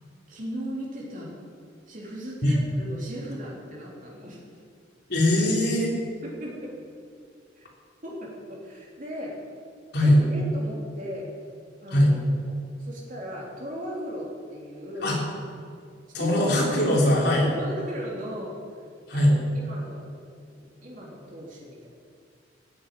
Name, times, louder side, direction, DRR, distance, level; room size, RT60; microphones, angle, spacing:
voice 1, 0.3-1.3 1.9-4.4 6.2-6.7 7.5-7.7 8.0-9.4 10.0-11.3 11.8-15.2 16.2-16.4 17.3-18.6 19.1-20.1 20.4-21.9, equal, 45° right, -3 dB, 3.3 m, -37 dB
voice 2, 5.1-6.0 9.9-10.2 11.9-12.1 15.0-15.2 16.1-17.5 19.1-19.3, left 1 dB, 60° left, -2 dB, 3.3 m, -21 dB
14.5 x 7.8 x 9.1 m, 2.3 s
head